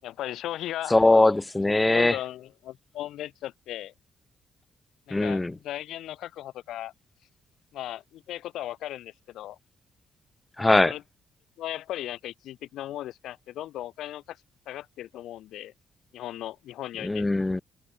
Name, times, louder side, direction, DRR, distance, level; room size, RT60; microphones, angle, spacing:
voice 1, 0.0-0.9 1.9-3.9 5.1-6.9 7.7-9.6 10.8-11.0 11.6-14.4 14.7-15.7 16.1-17.2, left 13 dB, 85° left, 6.5 m, -37 dB
voice 2, 0.9-2.2 5.1-5.6 10.6-10.9 17.0-17.6, left 2 dB, 10° left, 1.7 m, -21 dB
cardioid pair, 155°, 0 cm